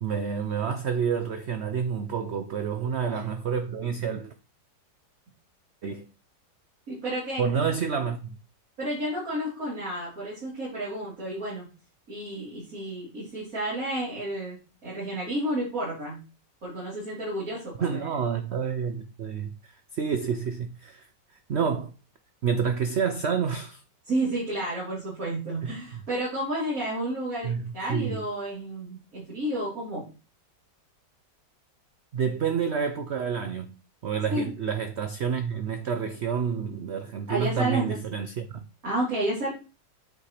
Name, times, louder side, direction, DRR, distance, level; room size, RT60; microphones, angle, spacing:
voice 1, 0.0-4.3 5.8-6.1 7.4-8.4 17.8-21.1 21.5-21.9 22.4-23.8 25.6-25.8 27.4-27.6 27.9-28.2 32.1-33.8 34.0-38.7, right 6 dB, 85° right, 0.5 m, -29 dB
voice 2, 6.9-7.4 8.8-11.7 12.1-16.2 16.6-18.1 24.0-30.0 34.3-34.5 37.3-38.0 38.8-39.5, right 1 dB, 50° right, 4.1 m, -31 dB
8.6 x 5.4 x 3.2 m
omnidirectional pair, 1.9 m